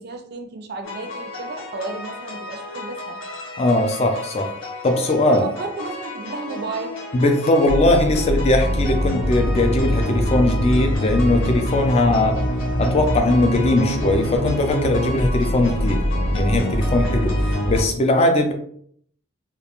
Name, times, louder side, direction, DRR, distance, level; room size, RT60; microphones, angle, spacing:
voice 1, 0.0-3.2 5.3-7.0, right 3 dB, 50° right, 6 dB, 0.4 m, -33 dB
sound 1, 0.8-17.8, equal, 70° left, 0.7 m, -25 dB
voice 2, 3.6-4.5 4.8-5.4 7.1-12.4 12.8-16.0 16.3-18.5, left 2 dB, 30° left, 5 dB, 0.4 m, -19 dB
2.3 x 2.2 x 2.9 m, 0.64 s
head